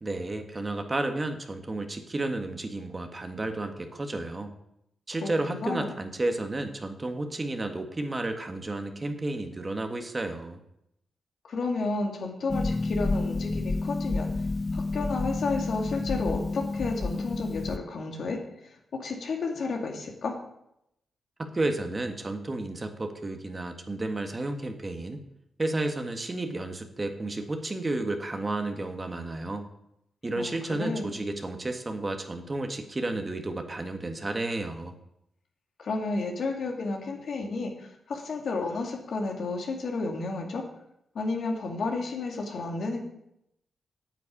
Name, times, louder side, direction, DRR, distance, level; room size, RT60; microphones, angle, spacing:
voice 1, 0.0-4.5 5.1-10.6 21.4-25.2 25.6-29.6 30.2-34.9, right 2 dB, 30° right, 5 dB, 1.7 m, -32 dB
voice 2, 5.2-5.9 11.4-14.3 14.7-20.4 30.3-31.1 35.8-40.7 41.1-43.0, left 3 dB, 70° left, 2 dB, 2.5 m, -32 dB
Harp, 12.5-17.8, left 3 dB, 30° left, 0.5 m, -30 dB
9.3 x 8.3 x 8.5 m, 0.80 s
cardioid pair, 75°, 0 cm